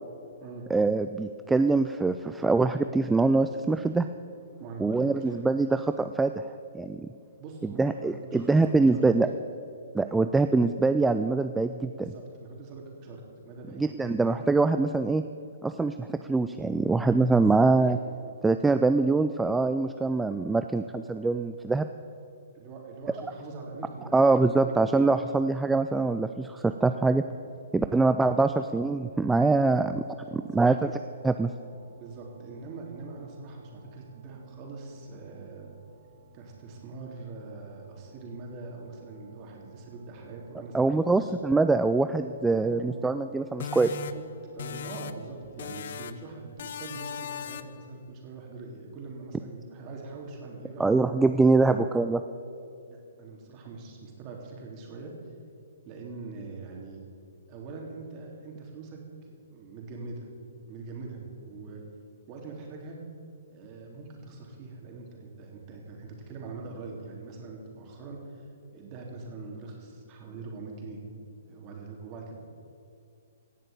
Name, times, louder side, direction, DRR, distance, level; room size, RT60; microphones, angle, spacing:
voice 1, 0.7-4.1 4.8-6.4 6.7-7.1 7.6-9.3 9.9-12.1 13.8-15.2 15.6-18.0 18.4-21.9 24.1-27.2 27.7-30.0 30.3-30.9 31.2-31.5 40.7-44.0 50.8-52.2, right 3 dB, 5° right, 9 dB, 0.4 m, -24 dB
voice 2, 4.6-5.8 7.4-9.0 12.0-14.2 17.4-17.6 22.5-24.2 24.5-24.8 30.1-30.6 32.0-35.7 36.3-41.3 42.5-42.9 43.9-51.8 52.9-55.1 55.9-57.0 57.5-60.3 60.7-61.8 62.3-63.0 63.5-68.4 68.7-71.0 71.4-72.3, right 3 dB, 30° right, 0 dB, 3.5 m, -43 dB
sound 1, 29.1-45.4, right 4 dB, 65° right, 2.5 m, -57 dB
sound 2, 43.6-45.3 45.6-46.3 46.6-47.9, left 7 dB, 60° left, 0.7 m, -38 dB
17.0 x 6.6 x 8.9 m, 2.4 s
hypercardioid pair, 145°, 0 cm